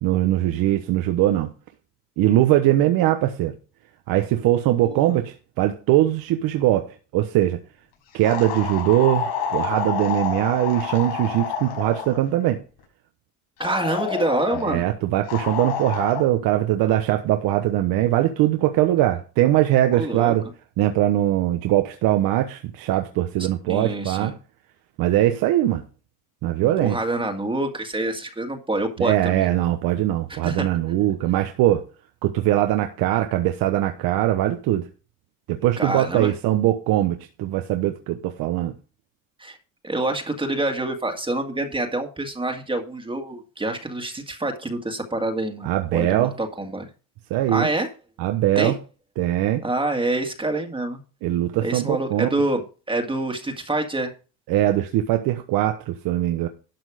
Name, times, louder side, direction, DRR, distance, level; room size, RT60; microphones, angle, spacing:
voice 1, 0.0-1.5 2.2-3.5 4.1-7.6 8.1-12.6 14.7-20.4 20.8-24.3 25.0-25.8 26.4-27.0 29.0-31.9 32.2-34.8 35.5-38.7 45.6-46.4 47.3-47.7 48.2-48.7 49.2-49.6 51.2-52.3 54.5-56.5, right 14 dB, 70° right, 1.2 m, -21 dB
voice 2, 4.8-5.1 13.6-14.9 19.9-20.3 23.7-24.3 26.6-29.5 30.3-30.7 35.8-36.3 39.4-39.6 39.8-46.9 47.5-47.9 48.6-48.7 49.6-51.0 51.6-52.6 52.9-54.1, right 2 dB, 15° right, 1.9 m, -26 dB
sound 1, 8.2-12.2 13.6-14.8 15.3-16.2, left 7 dB, 75° left, 5.2 m, -28 dB
12.0 x 6.2 x 5.0 m
supercardioid pair, 100°, 37 cm